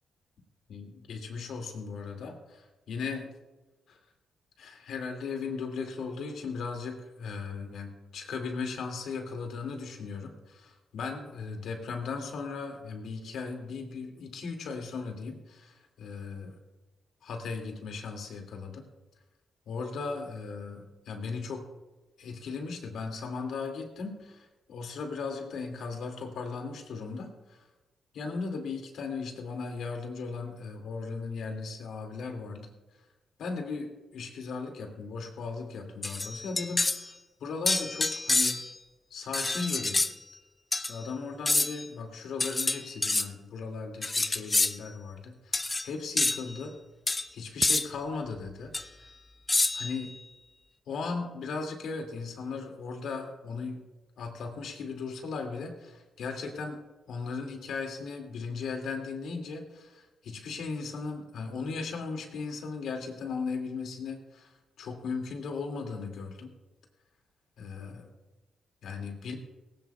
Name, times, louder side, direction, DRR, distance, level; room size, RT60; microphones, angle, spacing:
voice 1, 0.7-3.3 3.9-4.0 4.6-16.6 17.2-18.8 19.7-21.6 22.2-27.6 28.1-32.7 33.4-37.1 37.4-38.6 39.1-40.0 40.8-46.7 47.3-48.7 49.7-50.1 50.9-53.8 54.2-64.5 64.8-66.5 67.6-68.1 68.8-69.4, left 4 dB, 80° left, 3 dB, 2.3 m, -37 dB
sound 1, 36.0-37.0 37.7-38.8 39.3-40.1 40.7-40.9 41.5-41.8 42.4-43.3 44.0-44.8 45.5-45.9 46.2-46.4 47.1-47.2 47.6-47.9 48.7-48.8 49.5-50.0, left 2 dB, 20° left, 0.5 m, -27 dB
19.0 x 17.5 x 2.3 m, 1.1 s
cardioid pair, 100°, 0 cm